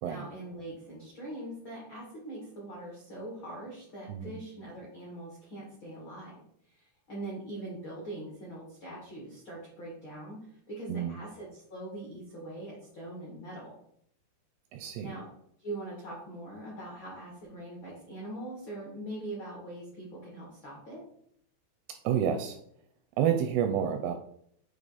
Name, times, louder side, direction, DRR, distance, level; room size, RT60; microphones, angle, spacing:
voice 1, 0.0-6.3 6.7-13.7 15.0-15.3 15.6-21.0, right 1 dB, 65° left, -4 dB, 1.2 m, -42 dB
voice 2, 14.7-15.2 22.0-22.6 23.2-24.1, right 8 dB, 85° right, 6 dB, 2.4 m, -29 dB
8.8 x 3.2 x 3.9 m, 0.68 s
omnidirectional pair, 5.1 m